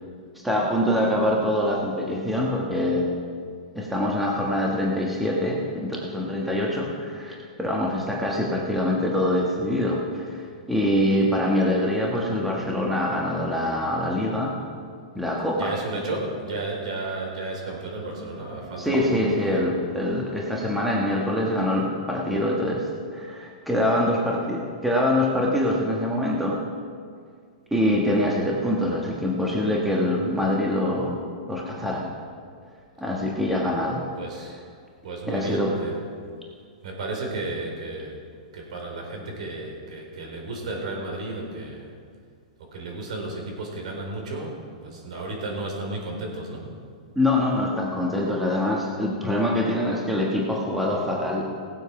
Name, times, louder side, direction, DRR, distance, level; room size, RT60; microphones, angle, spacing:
voice 1, 0.3-3.1 3.7-14.6 15.1-15.7 18.8-26.6 27.7-31.2 31.5-32.2 33.0-34.0 35.3-35.8 47.1-51.4, left 1 dB, ahead, -2 dB, 1.3 m, -24 dB
voice 2, 15.6-19.6 34.2-34.6 35.0-36.0 36.8-38.2 38.5-41.9 42.6-46.7, right 2 dB, 70° right, 0 dB, 4.2 m, -33 dB
17.5 x 8.1 x 5.8 m, 2.1 s
hypercardioid pair, 160°, 4 cm